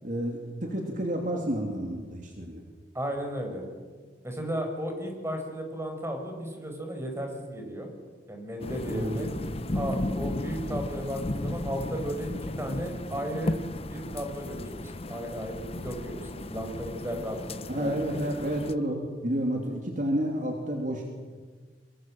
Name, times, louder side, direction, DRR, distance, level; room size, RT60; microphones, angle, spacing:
voice 1, 0.0-2.6 8.9-9.3 17.7-21.1, right 1 dB, 45° right, 2 dB, 2.9 m, -30 dB
voice 2, 2.9-3.7 4.2-7.9 8.3-9.3 9.7-13.5 13.9-18.2, equal, 15° right, 3 dB, 5.3 m, -35 dB
sound 1, 8.6-18.7, left 1 dB, 35° left, 0.9 m, -35 dB
24.5 x 23.5 x 7.7 m, 1.5 s
head